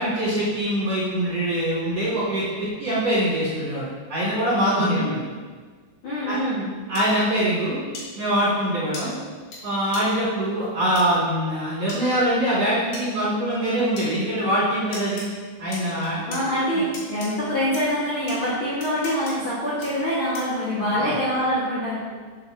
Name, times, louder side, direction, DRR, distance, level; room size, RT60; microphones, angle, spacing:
voice 1, 0.0-5.2 6.2-6.4 6.9-7.8 8.1-9.1 9.6-15.3 15.6-16.4 20.9-21.1, right 1 dB, 35° right, -10 dB, 3.2 m, -23 dB
voice 2, 4.7-5.1 6.0-6.7 16.3-22.0, equal, 50° left, -9 dB, 1.5 m, -25 dB
sound 1, 7.0-7.1 7.9-8.1 8.9-9.0 9.5-9.6 9.9-10.0 11.0-11.1 11.9-12.0 12.9-13.1 14.0-14.1 14.9-15.3 15.7-16.4 16.9-17.3 17.7-17.8 18.3-18.4 18.8-19.3 19.8-19.9 20.3-20.6, left 2 dB, 70° left, 5.2 m, -36 dB
15.0 x 7.6 x 2.9 m, 1.5 s
omnidirectional pair, 5.4 m